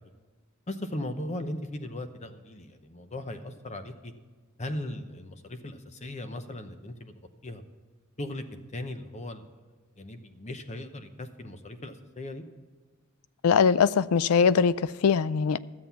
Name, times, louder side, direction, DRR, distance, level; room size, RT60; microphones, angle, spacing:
voice 1, 0.7-4.1 4.6-7.1 7.4-7.6 8.2-8.4 8.7-9.5 10.0-12.4, left 1 dB, 30° left, 8 dB, 0.8 m, -38 dB
voice 2, 13.4-15.6, left 6 dB, 80° left, 17 dB, 0.4 m, -22 dB
13.5 x 7.6 x 5.7 m, 1.4 s
head